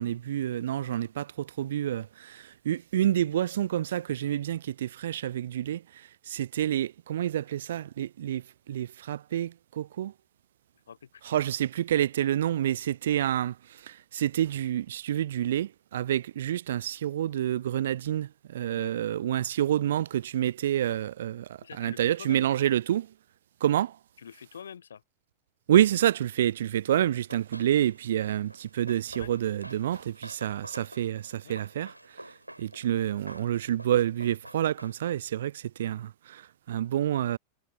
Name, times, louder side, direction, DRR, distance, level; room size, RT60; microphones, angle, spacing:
voice 1, 0.0-10.1 11.2-23.1 23.6-24.0 25.7-32.2 32.6-37.4, right 11 dB, 60° right, 0.4 m, -28 dB
voice 2, 10.9-11.2 18.7-19.0 21.6-22.5 24.2-25.0 29.2-29.3 31.4-31.6, left 7 dB, 70° left, 0.8 m, -46 dB
Run, 27.1-35.3, right 1 dB, 85° right, 4.2 m, -49 dB
figure-of-eight pair, 90°, 0 cm